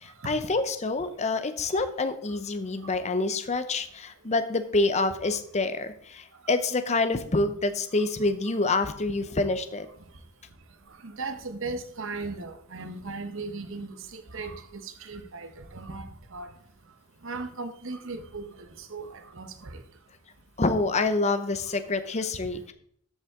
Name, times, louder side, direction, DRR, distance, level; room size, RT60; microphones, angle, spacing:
voice 1, 0.0-9.9 20.6-22.7, left 3 dB, 30° left, 0.7 m, -27 dB
voice 2, 11.0-16.5 17.2-18.5 18.8-19.8, right 3 dB, 60° right, 1.0 m, -37 dB
13.0 x 5.5 x 3.6 m
head